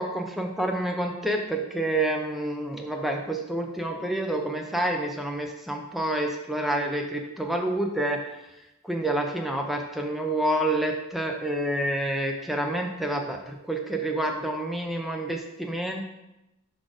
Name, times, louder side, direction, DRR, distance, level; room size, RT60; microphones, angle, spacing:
voice 1, 0.0-8.4 8.8-16.0, right 1 dB, ahead, 2 dB, 0.5 m, -28 dB
6.1 x 4.2 x 4.9 m, 0.92 s
head